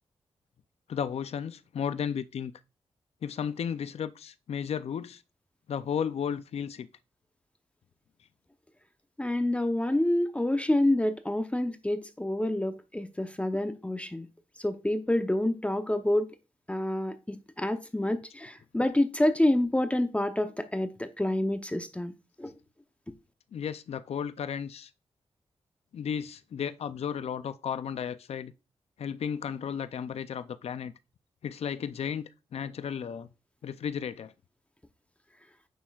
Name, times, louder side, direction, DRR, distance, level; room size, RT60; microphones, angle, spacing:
voice 1, 0.9-2.5 3.2-5.2 5.7-6.9 23.5-24.9 25.9-28.5 29.0-30.9 31.4-32.2 32.5-33.3 33.6-34.3, left 8 dB, 70° left, 0.5 m, -34 dB
voice 2, 9.2-14.3 14.6-16.3 16.7-22.1 22.4-22.5, left 1 dB, 10° left, 0.8 m, -28 dB
9.3 x 6.2 x 2.4 m
cardioid pair, 60°, 11 cm